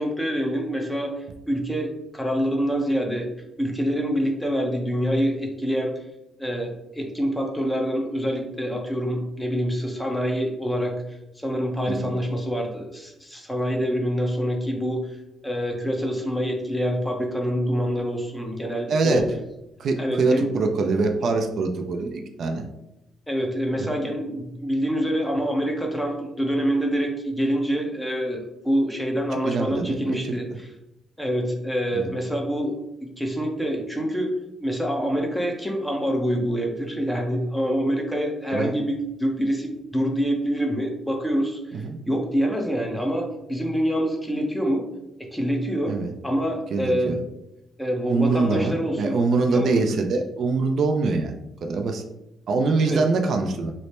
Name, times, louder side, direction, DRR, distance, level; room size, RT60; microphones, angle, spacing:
voice 1, 0.0-3.3 3.6-5.9 6.4-11.0 11.4-15.2 15.4-19.3 20.0-20.6 23.3-30.7 31.2-34.3 34.6-44.9 45.2-45.9 46.2-47.2 47.8-49.2 49.5-49.7 52.8-53.0, equal, 5° left, 1 dB, 0.7 m, -26 dB
voice 2, 18.9-19.2 19.8-22.7 23.8-23.9 29.5-30.3 31.9-32.1 38.5-38.8 41.7-42.0 45.9-46.1 46.7-47.2 48.1-52.0 52.5-53.7, right 3 dB, 60° right, 4 dB, 0.4 m, -24 dB
3.1 x 2.1 x 4.2 m, 0.89 s
cardioid pair, 90°, 0 cm